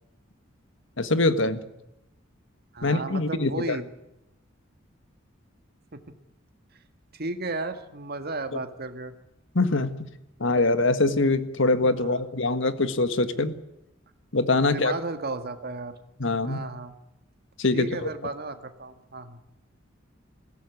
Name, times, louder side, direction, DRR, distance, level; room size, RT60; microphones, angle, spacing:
voice 1, 1.0-1.6 2.8-3.8 9.6-10.1 10.4-13.5 14.3-14.9 16.2-16.6 17.6-18.1, left 2 dB, 65° left, 11 dB, 1.7 m, -23 dB
voice 2, 2.7-3.9 5.9-6.0 7.1-9.1 12.0-12.2 14.6-15.9 16.4-16.9 17.7-19.4, right 2 dB, 50° right, 8 dB, 1.9 m, -34 dB
21.0 x 16.5 x 9.6 m, 0.88 s
head